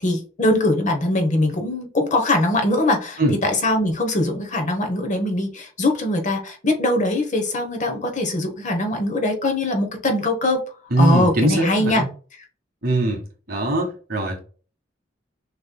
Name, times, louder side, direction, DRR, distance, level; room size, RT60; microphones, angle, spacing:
voice 1, 0.0-10.6 11.0-12.0, left 1 dB, 40° left, 4 dB, 1.1 m, -22 dB
voice 2, 10.9-12.1 12.8-13.2 13.5-14.4, right 1 dB, 50° right, 2 dB, 1.6 m, -21 dB
6.5 x 3.2 x 2.3 m, 0.37 s
head